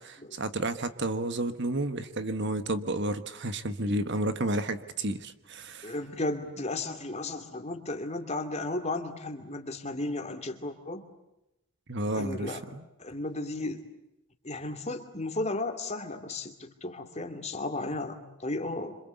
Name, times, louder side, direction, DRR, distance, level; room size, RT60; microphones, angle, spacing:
voice 1, 0.3-5.9 11.9-12.8, right 1 dB, 55° right, 11 dB, 1.4 m, -31 dB
voice 2, 5.8-11.0 12.1-12.6 13.0-13.8 14.4-19.0, left 2 dB, 30° left, 6 dB, 2.6 m, -34 dB
26.5 x 26.5 x 8.2 m, 0.89 s
head